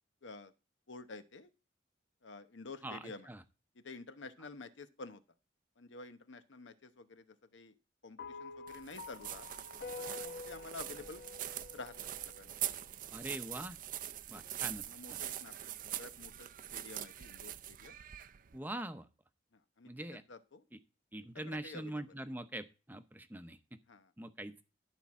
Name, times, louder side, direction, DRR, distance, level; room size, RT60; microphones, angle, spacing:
voice 1, 0.2-0.5 0.9-1.5 2.2-3.3 3.8-5.2 5.8-7.7 8.0-9.5 10.0-11.2 11.7-11.9 12.3-12.5 14.8-17.9 19.8-19.9 20.3-20.6 21.2-22.0 23.9-24.1, left 3 dB, 85° left, 11 dB, 0.9 m, -50 dB
voice 2, 2.8-3.4 13.1-13.8 14.3-14.8 15.1-15.2 18.5-19.1 19.9-20.2 20.7-20.8 21.1-23.8 24.2-24.6, right 1 dB, 10° right, 10 dB, 0.7 m, -43 dB
sound 1, 8.2-12.6, left 4 dB, 60° left, 0.8 m, -48 dB
sound 2, 8.7-18.6, right 12 dB, 45° right, 0.5 m, -43 dB
11.5 x 4.6 x 7.1 m, 0.31 s
head